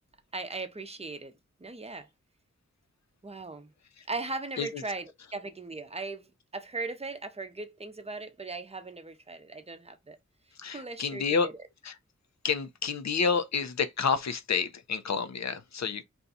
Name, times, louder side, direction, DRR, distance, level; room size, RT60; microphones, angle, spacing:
voice 1, 0.3-1.3 1.6-2.1 3.2-3.7 4.1-10.2 10.7-11.5, right 3 dB, 20° right, 0.7 m, -38 dB
voice 2, 10.6-11.5 11.8-12.0 12.4-16.0, left 5 dB, 65° left, 0.6 m, -29 dB
2.6 x 2.3 x 3.9 m
cardioid pair, 45°, 30 cm